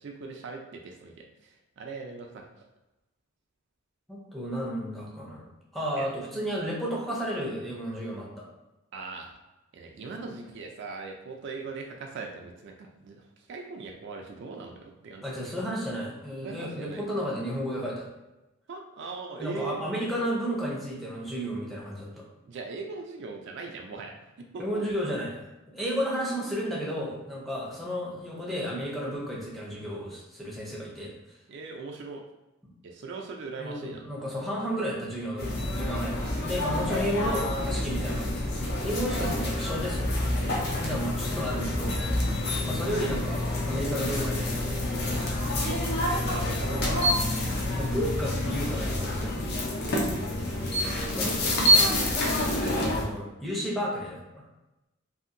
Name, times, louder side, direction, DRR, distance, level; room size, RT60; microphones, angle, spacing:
voice 1, 0.0-2.4 5.9-6.1 8.9-9.3 9.7-13.2 13.5-15.2 16.4-17.0 18.7-19.8 22.5-24.1 24.5-24.8 31.5-32.2 32.8-34.0 40.4-40.6 46.2-47.2, right 4 dB, 55° right, 2 dB, 0.4 m, -40 dB
voice 2, 4.1-8.5 15.2-18.1 19.4-22.2 24.6-25.4 25.7-31.1 33.6-38.4 38.8-40.2 40.8-42.0 42.7-44.7 45.0-45.3 47.8-49.4 51.1-51.9 52.7-54.4, equal, ahead, -4 dB, 0.5 m, -32 dB
sound 1, 35.4-53.0, left 1 dB, 50° left, 0.6 m, -28 dB
2.7 x 2.5 x 2.5 m, 1.0 s
head